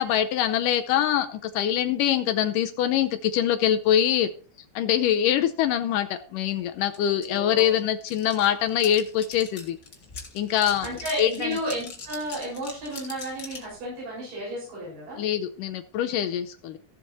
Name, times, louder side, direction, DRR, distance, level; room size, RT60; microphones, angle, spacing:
voice 1, 0.0-4.3 4.8-9.8 10.4-10.9 11.2-11.5 15.2-16.8, left 10 dB, 80° left, 8 dB, 2.1 m, -24 dB
sound 1, 6.9-7.0 7.2-13.7, left 4 dB, 35° left, 2.1 m, -42 dB
voice 2, 7.0-7.8 10.8-15.2, equal, 60° right, -6 dB, 8.5 m, -33 dB
16.0 x 7.4 x 4.2 m, 0.41 s
omnidirectional pair, 4.2 m